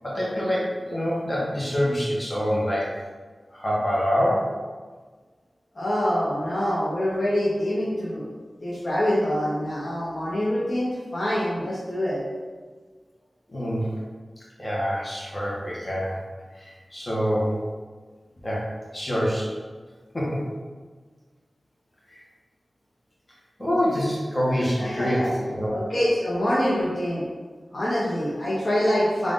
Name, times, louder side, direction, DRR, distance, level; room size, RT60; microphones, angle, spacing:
voice 1, 0.0-2.9 3.5-4.5 13.5-13.9 14.6-16.2 16.6-17.5 18.4-18.6 18.9-19.5 20.1-20.4 22.1-22.2 23.6-25.7, equal, 35° left, -6 dB, 1.2 m, -25 dB
voice 2, 5.7-8.2 8.6-12.2 24.8-25.3 25.7-27.3 27.7-29.3, equal, 55° left, -7 dB, 1.0 m, -25 dB
3.7 x 2.5 x 3.7 m, 1.4 s
wide cardioid pair, 55°, 0 cm